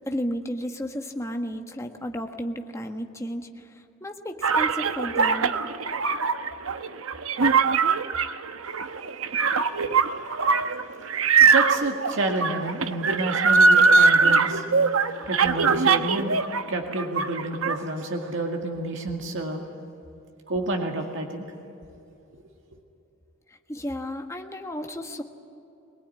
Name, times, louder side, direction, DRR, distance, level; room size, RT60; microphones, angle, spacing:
voice 1, 0.1-5.5 18.7-18.8 23.5-25.2, equal, 15° left, 4 dB, 1.4 m, -33 dB
sound 1, 4.4-16.6 16.9-17.8, right 4 dB, 90° right, 0.9 m, -21 dB
voice 2, 8.8-9.2 9.8-10.0 10.4-10.7 11.0-14.6 15.3-16.4 16.7-19.6 20.5-21.5 22.3-22.4, right 2 dB, 65° right, 2 dB, 2.1 m, -30 dB
22.0 x 20.0 x 9.6 m, 2.8 s
head